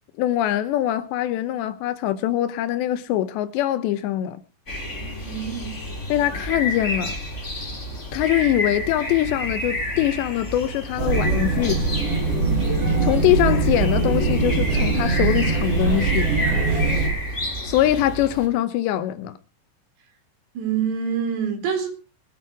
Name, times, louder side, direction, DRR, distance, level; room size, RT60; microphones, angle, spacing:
voice 1, 0.2-4.4 6.1-7.2 8.1-11.8 13.0-16.3 17.6-19.4, left 12 dB, 75° left, 2.9 m, -23 dB
sound 1, 4.7-18.5, left 1 dB, 15° left, 3.2 m, -30 dB
voice 2, 5.3-5.8 12.4-12.7 16.6-17.0 20.6-21.9, right 7 dB, 60° right, 5.8 m, -27 dB
sound 2, 11.0-17.1, right 3 dB, 40° right, 7.0 m, -22 dB
23.0 x 9.2 x 4.8 m
omnidirectional pair, 5.6 m